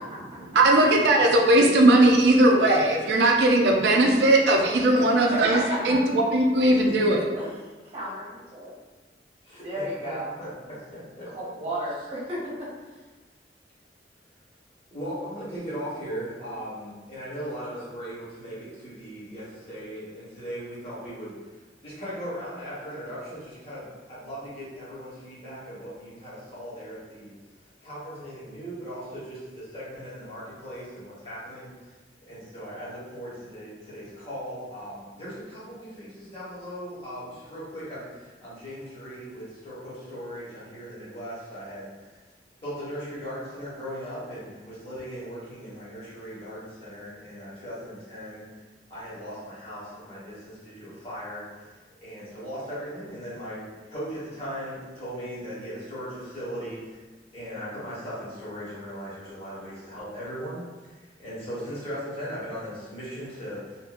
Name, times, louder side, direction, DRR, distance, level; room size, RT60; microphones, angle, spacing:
voice 1, 0.5-5.6 5.8-7.3, right 1 dB, 70° right, 1 dB, 0.4 m, -19 dB
voice 2, 4.9-6.0 7.4-7.5 7.8-8.3 8.5-8.7 9.6-10.3 11.3-12.7, equal, 35° right, -8 dB, 0.9 m, -33 dB
voice 3, 9.4-11.3 14.9-21.3 21.8-27.3 27.8-31.9 32.3-42.1 42.6-48.4 48.9-51.7 52.0-57.0 57.3-63.8, equal, 35° left, -10 dB, 1.1 m, -38 dB
2.7 x 2.6 x 2.5 m, 1.3 s
head